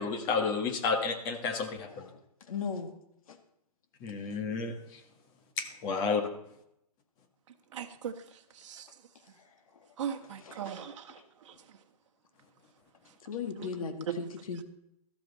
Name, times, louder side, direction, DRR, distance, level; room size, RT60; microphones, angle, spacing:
voice 1, 0.0-2.0 4.0-4.7 5.6-6.2, left 4 dB, 20° left, 6 dB, 1.5 m, -31 dB
voice 2, 1.8-2.1 2.5-2.9 3.3-3.4 10.5-10.6 13.3-14.6, left 6 dB, 60° left, 6 dB, 2.1 m, -37 dB
voice 3, 7.7-8.9 10.0-11.8 13.6-13.9, right 8 dB, 50° right, 4 dB, 1.7 m, -40 dB
14.0 x 13.5 x 4.2 m, 0.78 s
hypercardioid pair, 165°, 20 cm